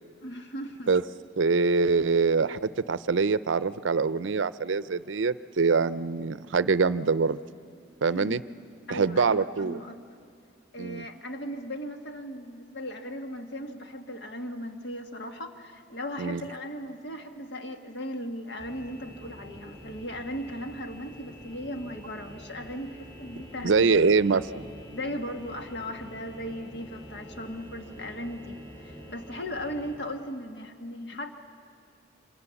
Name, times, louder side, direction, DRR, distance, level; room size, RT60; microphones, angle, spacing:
voice 1, 0.2-1.0 8.0-8.4 8.9-10.0 10.7-24.1 24.9-31.3, equal, 60° left, 5 dB, 1.6 m, -37 dB
voice 2, 1.4-2.6 2.9-7.4 8.0-8.4 8.9-9.8 10.8-11.1 16.2-16.4 23.6-24.6, right 4 dB, 75° right, 16 dB, 0.5 m, -24 dB
sound 1, 18.6-29.9, equal, 25° left, 5.5 m, -47 dB
27.5 x 25.0 x 7.1 m, 2.2 s
head